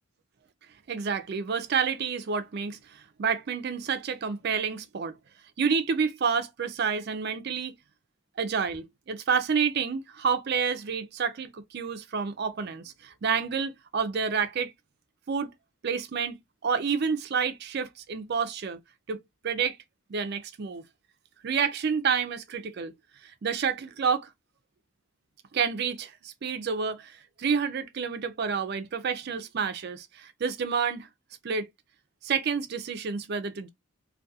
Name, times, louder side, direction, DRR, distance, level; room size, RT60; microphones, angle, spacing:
voice 1, 0.9-5.2 5.6-7.8 8.4-14.7 15.3-15.5 15.8-18.8 19.1-19.2 19.4-19.8 20.1-20.8 21.4-22.9 23.2-24.3 25.5-31.1 31.4-31.7 32.2-33.7, right 6 dB, 45° right, 0.4 m, -29 dB
2.3 x 2.2 x 2.6 m
head